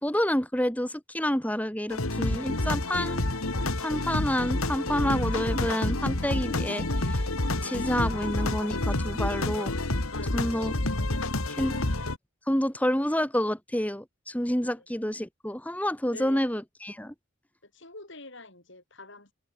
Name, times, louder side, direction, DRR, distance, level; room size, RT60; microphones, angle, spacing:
voice 1, 0.0-3.2 3.8-7.2 7.6-9.7 10.3-10.7 11.5-11.8 12.5-17.1, equal, 5° left, 2.3 m, -28 dB
sound 1, 1.9-12.2, left 2 dB, 75° left, 2.5 m, -29 dB
voice 2, 10.1-10.7 11.8-11.9 14.6-14.8 16.1-16.4 17.7-19.3, left 2 dB, 55° left, 7.6 m, -45 dB
head